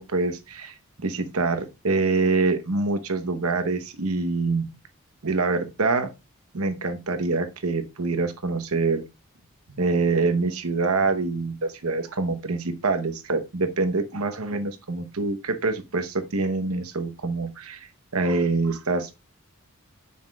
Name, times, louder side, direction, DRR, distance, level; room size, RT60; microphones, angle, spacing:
voice 1, 0.0-4.7 5.2-6.1 6.5-9.0 9.8-19.1, right 3 dB, 80° right, 1.0 m, -25 dB
7.4 x 5.9 x 2.4 m
head